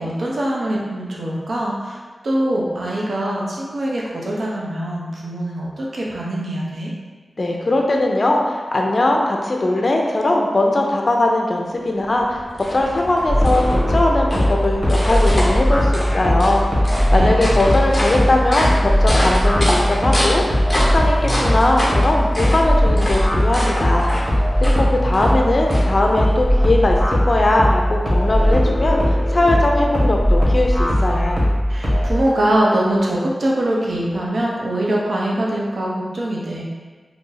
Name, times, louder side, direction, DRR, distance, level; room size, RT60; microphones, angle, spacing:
voice 1, 0.0-2.0 2.2-6.9 17.0-17.3 31.7-36.6, right 1 dB, 70° right, -3 dB, 0.7 m, -23 dB
voice 2, 7.4-12.4 12.7-20.4 20.8-24.1 24.6-31.4, left 2 dB, 45° left, 0 dB, 0.5 m, -19 dB
sound 1, 11.9-26.4, equal, 20° left, 1.0 m, -27 dB
sound 2, 13.3-32.1, equal, 10° right, 1.4 m, -18 dB
2.8 x 2.6 x 3.9 m, 1.4 s
wide cardioid pair, 65°, 0 cm